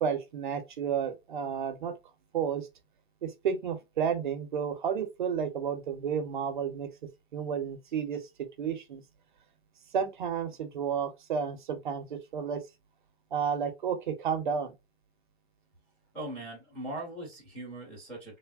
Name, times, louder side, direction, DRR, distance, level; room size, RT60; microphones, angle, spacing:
voice 1, 0.0-1.9 2.3-2.7 3.2-6.9 7.3-8.2 8.6-9.0 9.9-12.6 13.3-14.7, right 7 dB, 50° right, 0.6 m, -31 dB
voice 2, 16.1-18.4, right 1 dB, 5° left, 0.6 m, -40 dB
3.3 x 2.1 x 2.2 m
hypercardioid pair, 165°, 32 cm